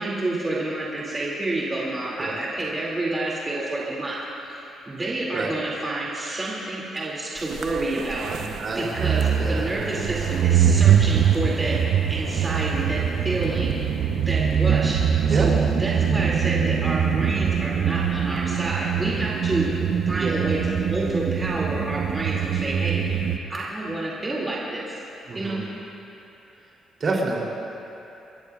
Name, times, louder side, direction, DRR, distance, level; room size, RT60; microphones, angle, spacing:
voice 1, 0.0-4.2 4.4-4.5 4.9-8.3 8.7-11.8 12.1-19.7 20.1-25.0 25.3-25.6, right 2 dB, 25° right, -6 dB, 2.4 m, -29 dB
sound 1, 7.5-23.4, right 8 dB, 70° right, 0.7 m, -23 dB
voice 2, 8.3-9.7 15.3-15.5 20.2-20.4 25.3-25.7 27.0-27.4, right 3 dB, 45° right, -2 dB, 3.1 m, -28 dB
28.0 x 13.0 x 2.4 m, 2.9 s
cardioid pair, 90°, 0 cm